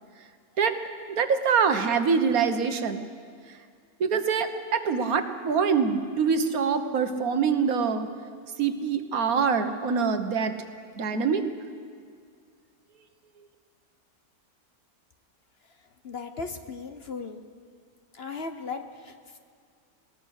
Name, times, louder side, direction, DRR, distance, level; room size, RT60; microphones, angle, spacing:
voice 1, 1.1-3.1 4.0-8.1 8.6-10.5 11.0-11.4, right 6 dB, 70° right, 8 dB, 1.6 m, -24 dB
voice 2, 16.0-17.4 18.1-19.4, left 4 dB, 50° left, 7 dB, 1.0 m, -37 dB
21.5 x 19.0 x 6.5 m, 2.1 s
omnidirectional pair, 1.6 m